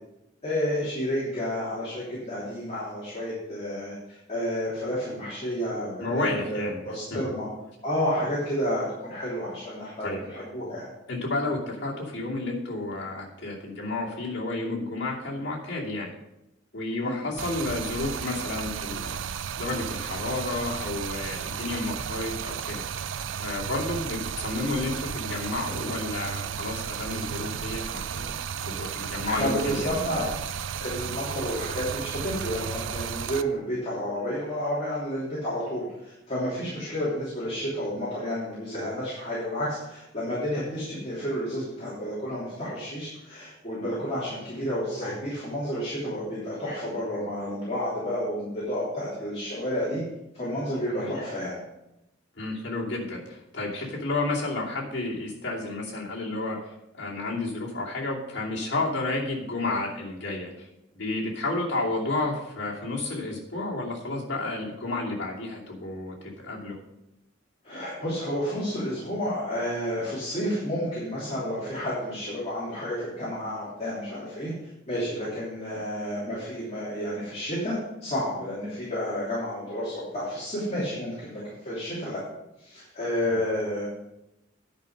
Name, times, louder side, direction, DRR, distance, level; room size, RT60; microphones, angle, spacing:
voice 1, 0.4-7.5 7.8-10.9 17.0-17.2 29.2-30.3 30.8-50.0 50.3-51.5 67.6-74.5 74.9-82.2 82.6-83.9, equal, 35° left, -8 dB, 3.1 m, -30 dB
voice 2, 6.0-7.2 10.0-10.2 11.1-16.1 16.7-19.2 19.6-22.8 23.4-28.4 28.6-29.9 50.9-51.2 52.3-60.7 60.9-66.8 83.3-83.4, left 2 dB, 65° left, -4 dB, 2.7 m, -31 dB
Stream, 17.4-33.4, right 8 dB, 85° right, 0.4 m, -34 dB
10.5 x 5.3 x 6.5 m, 0.90 s
head